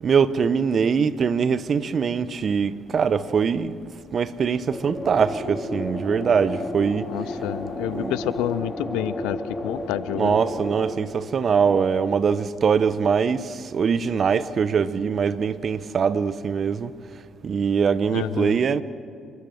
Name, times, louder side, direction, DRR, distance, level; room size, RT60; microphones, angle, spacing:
voice 1, 0.0-3.7 4.1-7.1 7.9-8.1 10.1-16.9 17.4-18.8, right 6 dB, 50° right, 0.9 m, -22 dB
sound 1, 4.6-10.9, left 1 dB, 20° left, 4.6 m, -32 dB
voice 2, 7.1-10.4 18.1-18.6, left 14 dB, 80° left, 0.5 m, -29 dB
28.0 x 13.0 x 7.9 m
hypercardioid pair, 50°, 0 cm